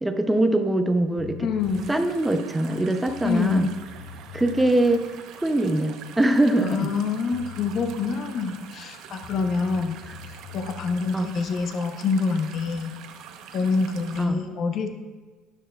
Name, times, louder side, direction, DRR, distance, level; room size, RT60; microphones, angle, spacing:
voice 1, 0.0-1.4 1.9-3.7 4.3-5.0 5.3-6.9 10.1-10.2 11.1-11.3 14.2-14.4, right 1 dB, 5° right, 7 dB, 0.5 m, -22 dB
sound 1, 1.2-1.7 2.7-2.8 3.1-4.7 7.0-7.1 7.3-8.0 9.2-11.0, left 10 dB, 90° left, 1.4 m, -42 dB
voice 2, 1.4-1.9 3.2-3.8 6.6-10.0 10.5-12.9 13.5-14.9, left 4 dB, 35° left, 6 dB, 0.6 m, -26 dB
sound 2, 1.6-14.3, right 8 dB, 50° right, 0.7 m, -44 dB
13.0 x 9.8 x 2.3 m, 1.4 s
cardioid pair, 170°, 0 cm